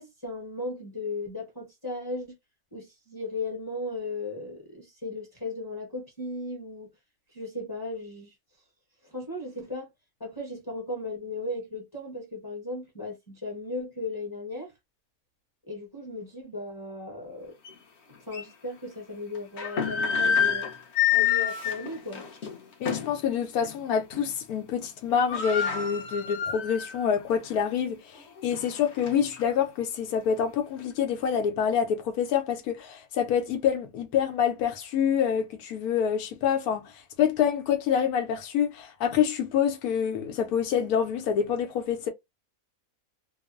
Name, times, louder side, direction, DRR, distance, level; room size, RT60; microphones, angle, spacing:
voice 1, 0.0-2.4 2.7-6.9 7.3-8.3 9.1-9.9 10.2-14.7 15.7-17.6 18.3-20.7 21.1-22.2, left 2 dB, 20° left, 0.8 m, -36 dB
sound 1, 17.6-17.7 18.3-18.4 19.3-23.2 23.6-23.8 24.1-24.5 24.8-24.9 25.1-27.1 27.5-27.6 28.2-29.5, left 8 dB, 55° left, 0.9 m, -28 dB
voice 2, 22.8-42.1, left 8 dB, 90° left, 1.1 m, -27 dB
2.9 x 2.0 x 2.4 m
omnidirectional pair, 1.5 m